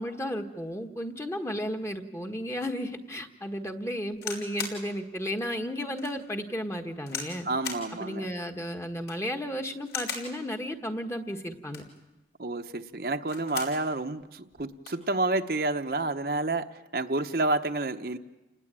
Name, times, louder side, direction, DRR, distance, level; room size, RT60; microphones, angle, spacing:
voice 1, 0.0-7.5 8.0-11.8, equal, 15° left, 5 dB, 1.4 m, -33 dB
sound 1, 4.1-4.8 5.4-5.5 6.0-6.1 7.1-7.4 7.6-7.9 8.9-9.3 9.8-10.3 11.5-12.0 13.1-13.8 14.2-14.3 14.5-15.0 15.9-16.1, left 5 dB, 70° left, 5.0 m, -37 dB
voice 2, 7.4-8.3 12.4-18.2, right 2 dB, 60° right, 6 dB, 1.0 m, -29 dB
29.5 x 19.5 x 9.0 m, 1.1 s
head